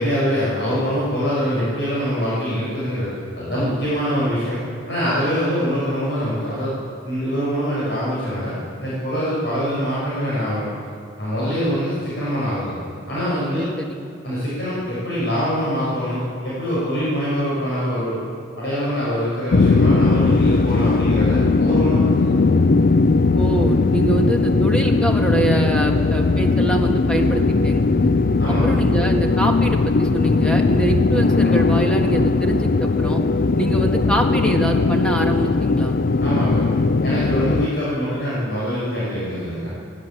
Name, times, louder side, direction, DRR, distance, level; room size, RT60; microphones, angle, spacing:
voice 1, 0.0-4.6 4.9-6.8 7.0-8.5 8.8-10.7 11.2-12.8 13.1-13.7 14.2-18.2 18.6-22.5 28.4-28.7 36.2-36.6 37.0-39.7, equal, 65° left, -8 dB, 6.1 m, -24 dB
voice 2, 13.5-14.0 23.3-28.1 28.6-33.2 33.6-35.9, right 2 dB, 5° left, 2 dB, 1.8 m, -24 dB
sound 1, 19.5-37.7, left 3 dB, 50° left, 0.4 m, -18 dB
18.0 x 16.5 x 8.8 m, 2.4 s
head